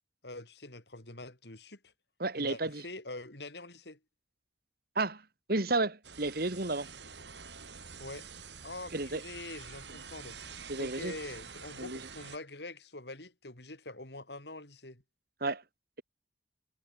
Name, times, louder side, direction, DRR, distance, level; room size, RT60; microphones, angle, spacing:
voice 1, 0.2-1.9 2.3-4.0 8.0-8.3 8.6-10.4 10.8-15.0, left 2 dB, 65° left, 4.9 m, -45 dB
voice 2, 2.2-2.8 5.0-5.2 5.5-6.9 8.9-9.2 10.7-11.1 11.8-12.0 15.4-15.6, right 2 dB, 55° right, 2.1 m, -32 dB
sound 1, 6.0-12.4, right 6 dB, 75° right, 6.3 m, -47 dB
head